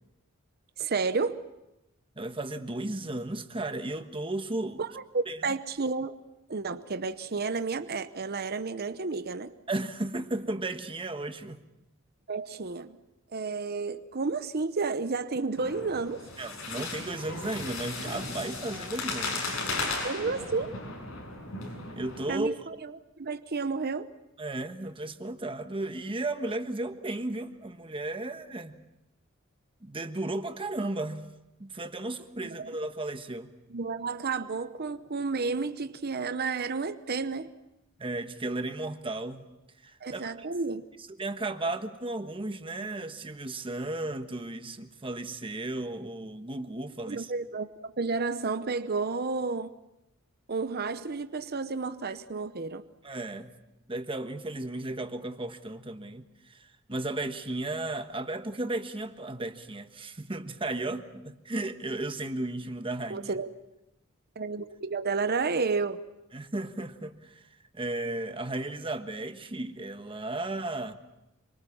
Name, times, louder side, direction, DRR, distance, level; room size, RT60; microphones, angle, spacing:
voice 1, 0.8-1.4 4.8-6.2 6.5-9.5 12.3-13.0 13.3-16.2 20.0-20.7 22.3-22.7 23.2-24.1 32.4-32.7 33.7-37.5 40.0-40.8 47.0-49.7 50.5-52.8 63.1-63.5 64.4-66.0, right 4 dB, 50° right, 0.9 m, -31 dB
voice 2, 2.2-4.8 5.3-5.4 9.7-11.6 16.4-19.6 22.0-22.6 24.4-28.8 29.8-31.3 31.6-33.5 38.0-39.5 39.8-40.5 41.2-47.3 53.0-53.5 53.9-63.3 66.3-67.4 67.7-70.9, right 2 dB, 25° right, 1.3 m, -34 dB
sound 1, 15.6-22.3, left 3 dB, 85° left, 7.5 m, -36 dB
27.0 x 24.5 x 7.3 m
head